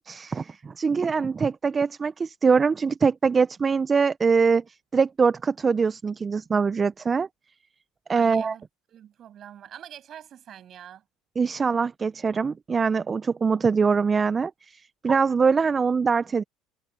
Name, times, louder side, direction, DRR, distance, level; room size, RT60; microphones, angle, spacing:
voice 1, 0.1-7.3 8.1-8.5 11.4-16.4, right 5 dB, 30° right, 0.8 m, -23 dB
voice 2, 8.1-8.6 8.9-11.0, right 10 dB, 50° right, 8.0 m, -44 dB
hypercardioid pair, 75°, 0 cm